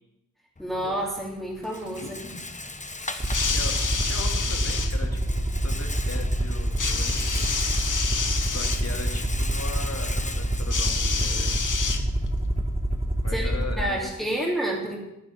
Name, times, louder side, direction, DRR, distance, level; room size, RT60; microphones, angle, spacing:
Rattle, 0.6-11.6, left 2 dB, 25° left, 1.1 m, -39 dB
voice 1, 0.6-2.2 3.0-3.3 13.3-15.0, right 1 dB, ahead, -5 dB, 3.4 m, -30 dB
voice 2, 2.0-2.4 3.5-3.8 4.0-7.6 8.4-11.6 13.2-14.5, left 3 dB, 50° left, 3 dB, 2.6 m, -39 dB
sound 1, 3.2-4.9 6.8-8.8 10.7-12.4 13.4-13.5, left 5 dB, 70° left, 1.4 m, -28 dB
Aircraft, 3.2-13.8, right 1 dB, 20° right, 1.6 m, -27 dB
10.5 x 10.5 x 8.6 m, 0.87 s
wide cardioid pair, 80°, 32 cm